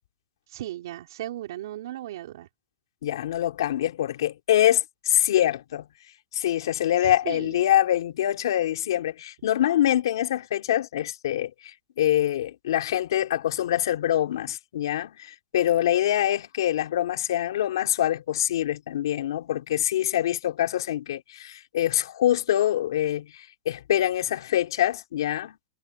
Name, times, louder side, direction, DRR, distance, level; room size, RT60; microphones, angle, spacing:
voice 1, 0.5-2.5 7.0-7.7, right 14 dB, 50° right, 5.3 m, -36 dB
voice 2, 3.0-5.8 6.3-23.3 23.7-25.6, left 12 dB, 60° left, 3.6 m, -25 dB
supercardioid pair, 180°, 3 cm